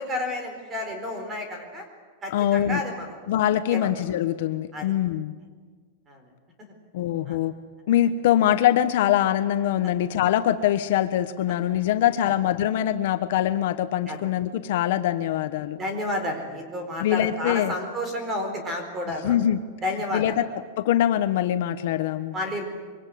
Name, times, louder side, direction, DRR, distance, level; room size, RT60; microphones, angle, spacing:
voice 1, 0.0-1.8 2.2-3.2 3.7-3.9 4.7-4.9 6.1-6.2 6.6-6.7 7.3-7.4 12.2-12.3 14.1-14.3 15.8-19.4 19.8-20.3 22.3-22.7, left 1 dB, 15° right, 5 dB, 4.3 m, -31 dB
voice 2, 2.3-2.8 3.3-5.3 6.9-7.5 7.9-15.8 17.0-17.7 19.2-19.6 20.1-20.5 20.8-22.3, left 11 dB, 50° left, 9 dB, 1.1 m, -23 dB
25.0 x 24.0 x 9.4 m, 1.5 s
supercardioid pair, 175°, 0 cm